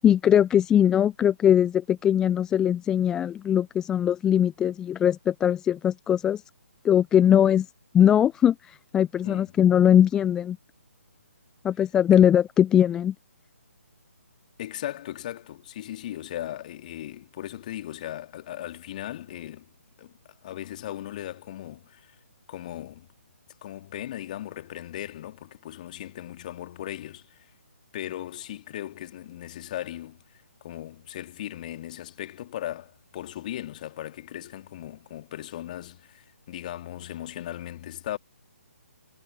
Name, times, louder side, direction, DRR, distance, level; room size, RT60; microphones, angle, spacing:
voice 1, 0.0-6.4 6.8-7.7 7.9-10.6 11.6-13.1, left 9 dB, 10° left, 0.3 m, -21 dB
voice 2, 14.6-19.7 20.0-22.2 22.5-23.1 23.6-27.5 27.9-38.2, left 13 dB, 35° left, 2.2 m, -38 dB
figure-of-eight pair, 140°, 8 cm